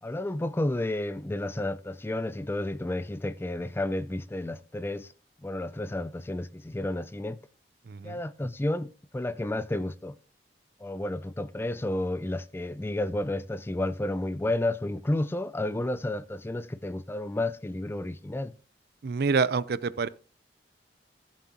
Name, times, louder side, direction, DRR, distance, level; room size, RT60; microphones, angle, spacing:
voice 1, 0.0-5.1 5.4-7.4 8.0-10.2 10.8-18.5, left 1 dB, 15° left, 0.3 m, -31 dB
voice 2, 7.9-8.2 19.0-20.1, right 5 dB, 60° right, 0.5 m, -27 dB
14.5 x 7.4 x 2.9 m
head